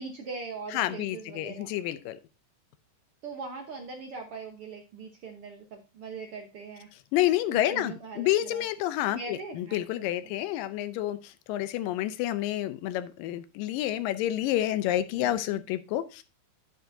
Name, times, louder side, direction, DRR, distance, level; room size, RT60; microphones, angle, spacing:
voice 1, 0.0-1.7 3.2-6.9 7.5-8.6 9.1-9.8 15.2-15.6, right 4 dB, 60° right, 3 dB, 1.5 m, -41 dB
voice 2, 0.7-2.2 7.1-16.2, left 14 dB, 90° left, 13 dB, 2.3 m, -29 dB
10.5 x 9.0 x 2.7 m, 0.29 s
omnidirectional pair, 3.9 m